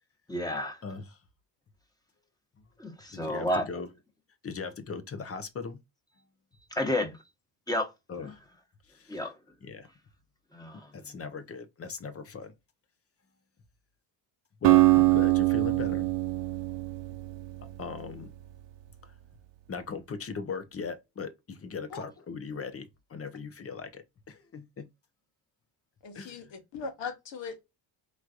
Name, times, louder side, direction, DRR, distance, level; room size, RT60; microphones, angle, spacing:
voice 1, 0.3-0.8 2.8-3.7 6.7-7.2 7.7-7.9 8.2-8.3 9.1-9.3 10.5-10.9, left 1 dB, 10° left, 1.3 m, -31 dB
voice 2, 0.8-1.2 3.1-3.9 4.4-5.8 8.1-8.4 8.9-9.2 9.6-9.9 10.9-12.5 14.6-16.1 17.8-18.3 19.0-19.1 19.7-24.9 26.1-26.4, left 5 dB, 30° left, 0.8 m, -39 dB
Acoustic guitar, 14.6-18.7, right 19 dB, 65° right, 0.8 m, -24 dB
voice 3, 26.0-27.6, left 5 dB, 65° left, 1.5 m, -39 dB
4.7 x 3.1 x 2.5 m
cardioid pair, 115°, 46 cm